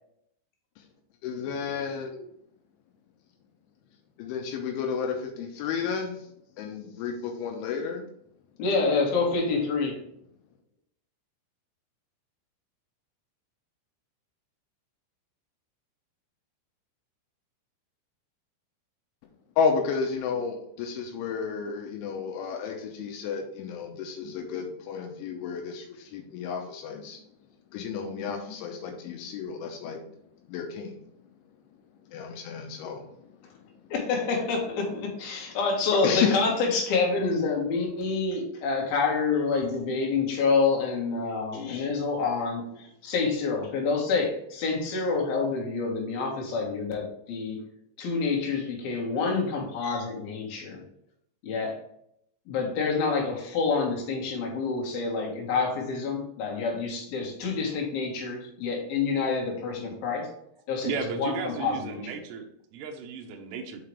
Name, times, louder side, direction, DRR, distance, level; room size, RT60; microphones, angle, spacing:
voice 1, 1.2-2.2 4.2-6.2 6.6-8.0 19.6-27.2 27.7-30.0 30.5-30.9 32.1-33.0 36.0-36.4, left 6 dB, 80° left, 3 dB, 3.0 m, -31 dB
voice 2, 8.6-10.0 33.9-47.7 48.0-50.8 51.4-51.8 52.5-60.3 60.7-62.0, left 4 dB, 60° left, -1 dB, 2.9 m, -27 dB
voice 3, 60.8-63.8, right 5 dB, 85° right, 2 dB, 2.4 m, -35 dB
6.7 x 5.6 x 3.3 m, 0.72 s
omnidirectional pair, 5.9 m